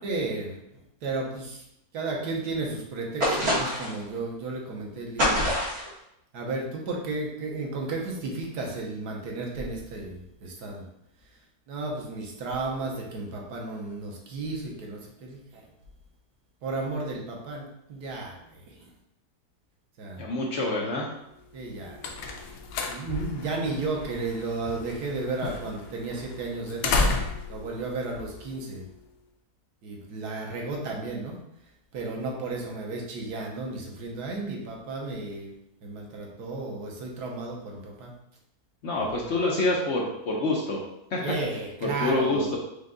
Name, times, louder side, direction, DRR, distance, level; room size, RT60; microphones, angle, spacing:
voice 1, 0.0-0.6 1.0-1.6 1.9-5.5 6.3-10.8 11.7-15.6 16.6-18.9 20.0-20.3 21.5-22.1 22.9-27.0 27.5-28.9 29.8-31.4 31.9-35.5 35.8-38.1 39.0-39.3 41.2-42.6, right 3 dB, 90° right, -1 dB, 1.4 m, -33 dB
sound 1, 3.2-4.0 5.2-5.9, equal, 70° right, 1.8 m, -25 dB
voice 2, 20.2-21.1 38.8-40.8 41.1-41.2 41.8-42.6, left 2 dB, 60° left, -2 dB, 0.8 m, -26 dB
sound 2, 21.5-29.0, left 3 dB, 85° left, 1.2 m, -33 dB
5.2 x 2.3 x 3.7 m, 0.81 s
omnidirectional pair, 1.7 m